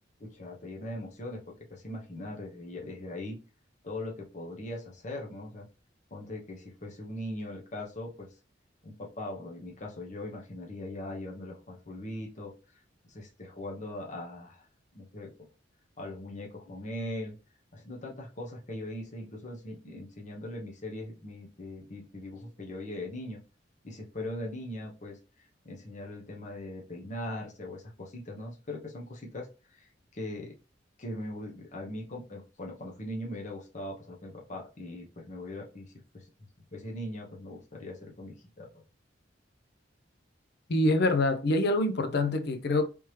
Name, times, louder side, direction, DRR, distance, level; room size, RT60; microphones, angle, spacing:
voice 1, 0.2-3.4 3.8-5.7 6.1-8.3 8.8-12.5 13.1-14.6 14.9-15.3 16.0-17.3 17.7-23.4 23.8-25.2 25.6-29.5 29.7-30.5 31.0-36.3 36.7-38.7, left 1 dB, 40° left, 0.9 m, -40 dB
voice 2, 40.7-42.9, left 2 dB, 60° left, 0.5 m, -25 dB
3.4 x 2.9 x 3.1 m
head